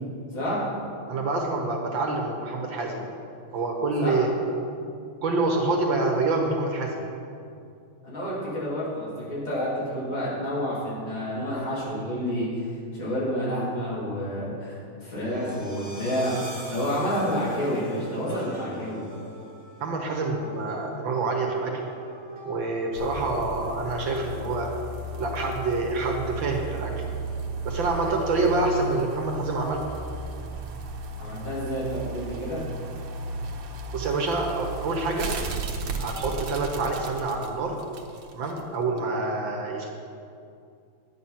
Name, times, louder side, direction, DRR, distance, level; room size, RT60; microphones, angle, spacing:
voice 1, 0.3-0.6 4.0-4.2 8.0-16.4 16.7-19.0 31.2-32.6, equal, 60° left, -8 dB, 4.2 m, -29 dB
voice 2, 1.1-3.1 3.5-4.3 5.2-7.1 19.8-21.8 22.5-24.7 25.2-27.0 27.7-29.8 33.9-35.3 36.0-37.7 38.3-39.9, right 3 dB, 60° right, 1 dB, 1.9 m, -27 dB
sound 1, 15.1-25.6, equal, 15° right, 2.0 m, -44 dB
sound 2, 22.9-38.6 39.0-39.1, right 2 dB, 80° right, 2.0 m, -35 dB
10.5 x 9.4 x 5.8 m, 2.5 s
omnidirectional pair, 2.4 m